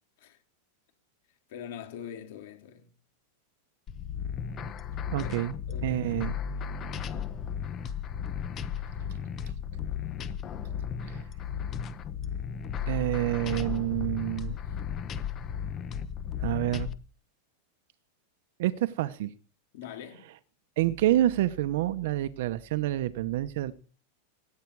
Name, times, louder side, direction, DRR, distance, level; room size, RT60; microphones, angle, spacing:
voice 1, 1.5-2.9 5.2-5.3 5.7-6.0 19.7-20.3, left 9 dB, 60° left, 3.3 m, -43 dB
sound 1, 3.9-16.9, left 8 dB, 25° left, 1.0 m, -35 dB
voice 2, 5.1-5.5 5.8-6.4 11.1-11.2 12.9-14.6 16.4-16.9 18.6-19.3 20.8-23.7, right 14 dB, 65° right, 0.9 m, -28 dB
17.0 x 10.5 x 4.7 m
supercardioid pair, 155°, 0 cm